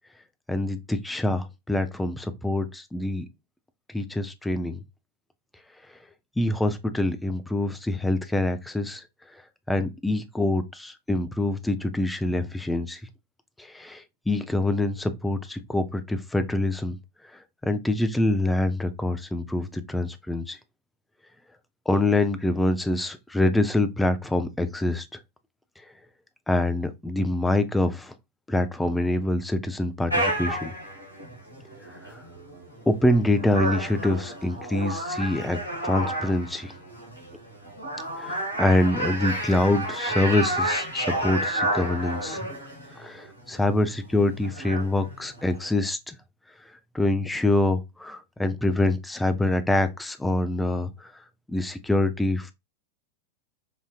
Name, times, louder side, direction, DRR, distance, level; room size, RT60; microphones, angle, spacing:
voice 1, 0.5-3.3 3.9-4.8 6.4-9.0 9.7-13.0 13.7-17.0 17.6-20.6 21.9-25.1 26.5-28.1 28.5-30.7 32.9-36.7 38.2-42.4 43.0-46.2 46.9-50.9 51.5-52.5, left 2 dB, 5° left, 0.5 m, -25 dB
sound 1, 30.1-45.7, right 1 dB, 85° left, 1.5 m, -31 dB
5.0 x 2.6 x 2.3 m
figure-of-eight pair, 90°, 0 cm